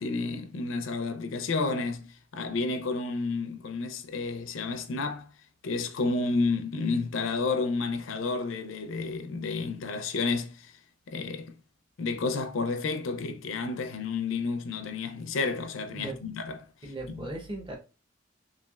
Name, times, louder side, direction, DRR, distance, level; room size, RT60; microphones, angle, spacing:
voice 1, 0.0-5.3 5.6-10.7 11.1-11.5 12.0-16.6 17.1-17.2, left 3 dB, 85° left, 0.5 m, -31 dB
voice 2, 16.8-17.8, right 2 dB, 25° right, 0.8 m, -37 dB
3.2 x 2.4 x 2.3 m
head